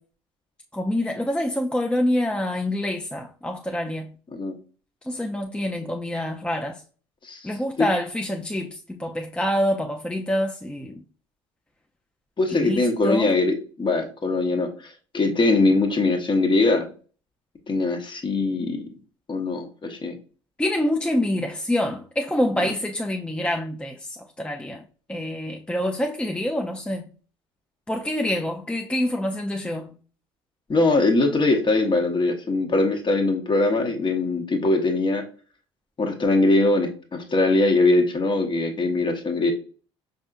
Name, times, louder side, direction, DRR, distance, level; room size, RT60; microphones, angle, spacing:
voice 1, 0.7-4.1 5.1-6.8 7.4-11.0 12.5-13.3 20.6-24.8 25.1-27.1 27.9-29.9, left 1 dB, 5° left, 0.5 m, -26 dB
voice 2, 12.4-16.9 17.7-18.9 19.3-20.2 22.6-22.7 30.7-35.2 36.0-39.5, left 2 dB, 35° left, 1.1 m, -22 dB
5.4 x 2.6 x 2.5 m
hypercardioid pair, 55°, 15 cm